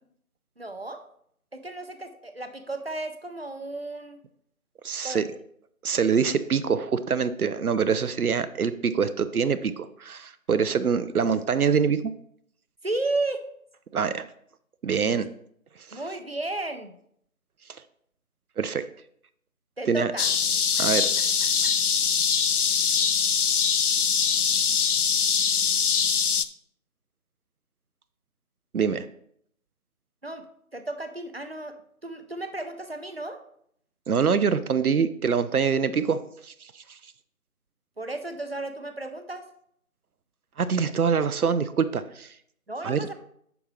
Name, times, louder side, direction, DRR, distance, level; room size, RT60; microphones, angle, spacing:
voice 1, 0.6-1.0 1.5-4.2 5.0-5.2 12.8-13.4 15.9-16.9 19.8-20.3 30.2-30.4 30.7-31.7 32.0-33.4 38.0-39.5 42.7-43.1, right 2 dB, 45° right, 7 dB, 0.7 m, -33 dB
voice 2, 4.8-5.2 5.8-12.1 13.9-14.3 14.8-15.3 15.9-16.0 18.6-18.8 19.9-20.1 20.8-21.1 28.7-29.0 34.1-37.0 40.6-42.3 42.8-43.0, right 6 dB, 80° right, 12 dB, 0.6 m, -25 dB
sound 1, 20.2-26.5, left 7 dB, 85° left, 0.7 m, -23 dB
8.8 x 5.9 x 3.1 m, 0.68 s
figure-of-eight pair, 175°, 44 cm